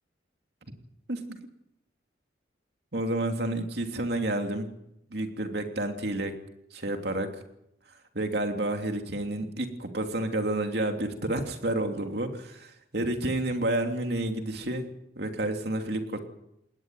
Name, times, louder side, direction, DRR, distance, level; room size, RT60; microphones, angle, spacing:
voice 1, 2.9-4.7 5.1-6.4 6.7-7.4 8.1-14.9 15.1-16.2, right 1 dB, 60° right, 4 dB, 3.0 m, -30 dB
20.0 x 17.5 x 9.4 m, 0.80 s
head